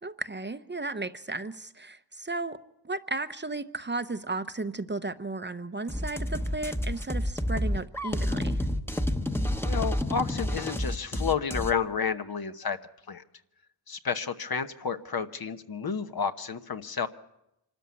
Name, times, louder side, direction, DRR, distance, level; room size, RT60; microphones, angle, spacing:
voice 1, 0.0-2.6 2.8-8.6, right 2 dB, 25° right, 10 dB, 0.8 m, -34 dB
sound 1, 5.9-11.7, left 1 dB, 5° left, 1.0 m, -29 dB
voice 2, 9.6-12.8 13.1-13.2 13.9-17.1, left 6 dB, 55° left, 9 dB, 1.1 m, -31 dB
25.5 x 13.5 x 9.6 m, 0.85 s
wide cardioid pair, 100°, 44 cm